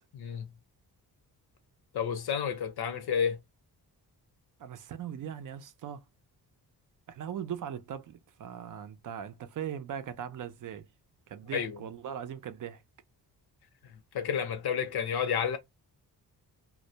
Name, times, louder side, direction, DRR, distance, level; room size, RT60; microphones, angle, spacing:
voice 1, 0.1-0.6 1.9-3.4 11.5-11.8 13.8-15.6, left 7 dB, 75° left, 0.7 m, -31 dB
voice 2, 4.6-6.0 7.1-10.9 11.3-12.8, right 9 dB, 55° right, 0.5 m, -39 dB
2.2 x 2.1 x 2.7 m
wide cardioid pair, 135°, 38 cm